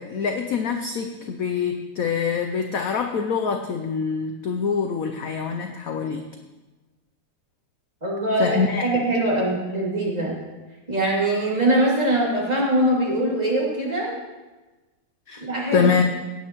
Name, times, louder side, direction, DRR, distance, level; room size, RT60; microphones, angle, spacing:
voice 1, 0.0-6.3 8.4-8.8 15.3-15.4 15.7-16.0, left 6 dB, 65° left, 5 dB, 0.9 m, -25 dB
voice 2, 8.0-10.4 10.9-14.1 15.4-15.9, right 1 dB, 20° right, -5 dB, 2.7 m, -22 dB
17.5 x 8.7 x 3.0 m, 1.2 s
omnidirectional pair, 2.0 m